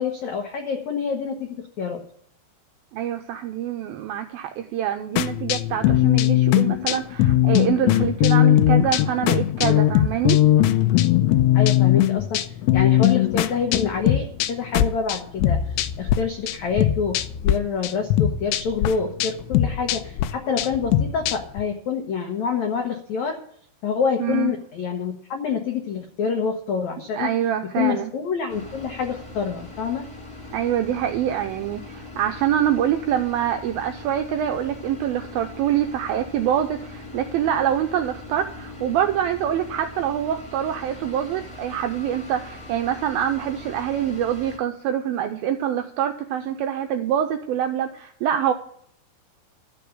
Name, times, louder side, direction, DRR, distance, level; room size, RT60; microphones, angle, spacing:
voice 1, 0.0-2.0 11.5-17.2 17.4-23.4 23.8-27.3 27.8-30.0, left 6 dB, 75° left, 3 dB, 1.7 m, -27 dB
voice 2, 2.9-10.4 24.2-24.5 27.1-28.1 30.5-48.5, right 10 dB, 85° right, 6 dB, 2.1 m, -25 dB
sound 1, 5.2-16.2 16.5-17.5 17.8-21.6, left 13 dB, 90° left, 2.9 m, -20 dB
sound 2, 28.5-44.6, left 2 dB, 25° left, 0.6 m, -41 dB
13.0 x 6.9 x 7.8 m, 0.63 s
omnidirectional pair, 5.0 m